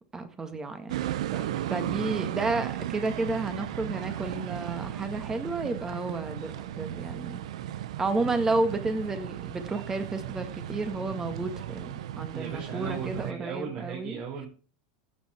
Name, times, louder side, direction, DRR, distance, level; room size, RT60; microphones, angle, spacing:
voice 1, 0.1-1.3 1.7-7.4 8.0-14.2, right 3 dB, 15° right, 8 dB, 1.8 m, -31 dB
sound 1, 0.9-13.3, right 12 dB, 85° right, 0.7 m, -35 dB
voice 2, 12.3-14.5, right 6 dB, 45° right, -2 dB, 4.9 m, -37 dB
14.5 x 7.4 x 4.4 m, 0.38 s
supercardioid pair, 130°, 3 cm